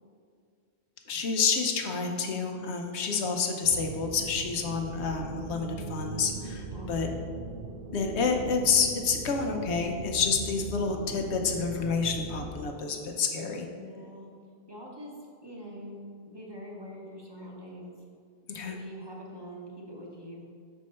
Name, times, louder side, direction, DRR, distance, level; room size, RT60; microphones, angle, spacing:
voice 1, 1.1-7.1 7.9-13.7 18.5-18.8, left 5 dB, 80° left, 3 dB, 1.0 m, -29 dB
sound 1, 3.6-12.6, right 2 dB, 60° right, 0.9 m, -39 dB
voice 2, 6.7-7.2 13.7-14.3 14.7-15.1 15.4-17.9 18.6-20.4, equal, 25° right, -3 dB, 0.8 m, -44 dB
6.4 x 4.6 x 4.2 m, 2.1 s
omnidirectional pair, 1.1 m